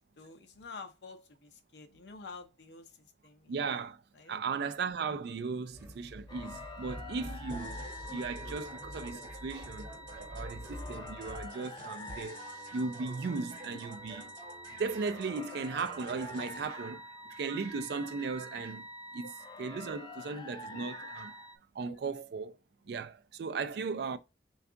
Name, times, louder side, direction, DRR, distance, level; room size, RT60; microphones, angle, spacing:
voice 1, 0.2-3.0 3.2-3.6 4.2-4.4 7.8-8.6 9.1-9.3 9.9-10.1 19.2-19.3 20.7-21.1 21.8-22.0, left 3 dB, 70° left, 0.6 m, -50 dB
voice 2, 3.5-4.0 4.3-7.8 8.1-12.4 12.7-14.3 14.8-17.0 17.3-18.9 19.1-19.3 19.6-21.3 21.7-22.6 22.9-24.2, right 4 dB, 65° right, 0.4 m, -37 dB
sound 1, 5.7-11.5, equal, 15° right, 0.8 m, -46 dB
sound 2, 6.3-21.6, left 1 dB, 25° left, 0.4 m, -47 dB
sound 3, 7.5-16.7, right 2 dB, 45° right, 1.0 m, -50 dB
3.4 x 2.3 x 3.7 m
head